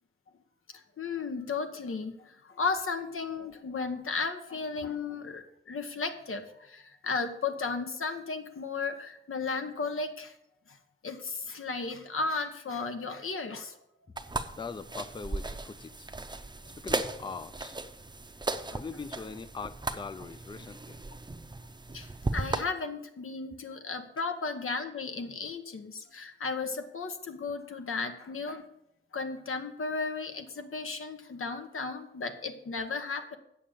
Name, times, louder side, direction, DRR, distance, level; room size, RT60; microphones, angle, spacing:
voice 1, 0.7-10.3 10.7-10.8 11.0-13.8 18.5-18.8 21.9-28.7 29.1-33.4, left 4 dB, 85° left, 6 dB, 1.1 m, -35 dB
sound 1, 14.2-22.6, right 2 dB, 20° right, 0.6 m, -36 dB
voice 2, 14.5-16.1 16.8-17.8 18.7-21.0, left 4 dB, 25° left, 13 dB, 0.4 m, -41 dB
8.4 x 6.5 x 7.3 m, 0.79 s
wide cardioid pair, 105°, 21 cm